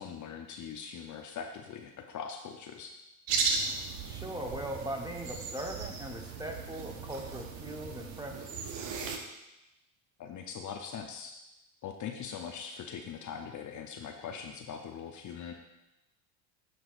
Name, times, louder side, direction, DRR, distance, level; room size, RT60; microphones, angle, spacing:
voice 1, 0.0-2.9 10.2-11.4 11.8-15.5, left 7 dB, 40° left, 3 dB, 0.8 m, -41 dB
sound 1, 3.3-9.2, right 5 dB, 65° right, 1.2 m, -36 dB
voice 2, 4.0-8.5, right 1 dB, 10° right, 2 dB, 1.1 m, -39 dB
12.5 x 4.7 x 2.6 m, 0.92 s
hypercardioid pair, 70°, 47 cm